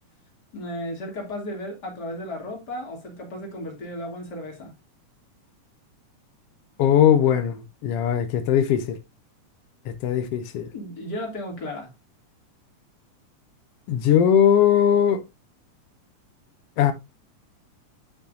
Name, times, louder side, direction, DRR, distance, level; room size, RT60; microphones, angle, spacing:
voice 1, 0.5-4.7 10.7-11.9, left 1 dB, 30° left, 3.1 m, -34 dB
voice 2, 6.8-9.0 9.9-10.7 13.9-15.2 16.8-16.9, left 9 dB, 80° left, 1.3 m, -20 dB
10.5 x 5.7 x 2.6 m
omnidirectional pair, 3.6 m